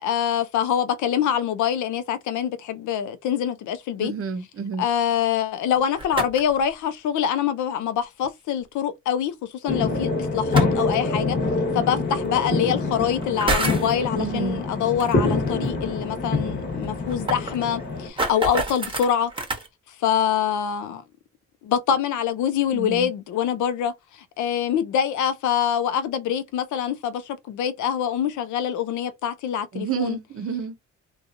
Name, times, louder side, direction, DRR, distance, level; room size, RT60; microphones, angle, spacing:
voice 1, 0.0-4.1 4.8-9.3 9.6-11.4 11.7-19.3 20.0-21.0 21.6-30.2, left 9 dB, 75° left, 0.6 m, -25 dB
voice 2, 4.0-4.8 14.2-14.6 22.7-23.1 29.7-30.8, right 6 dB, 50° right, 0.7 m, -29 dB
sound 1, 5.8-6.6 8.2-8.3 10.3-10.9 12.1-12.2 13.2-13.9 15.0-15.1 15.5-15.6 15.9-16.0 16.2-16.3 16.8-19.7, right 2 dB, 15° right, 0.9 m, -28 dB
sound 2, 9.7-18.1, left 3 dB, 35° left, 1.2 m, -26 dB
2.7 x 2.3 x 2.6 m
cardioid pair, 90°, 30 cm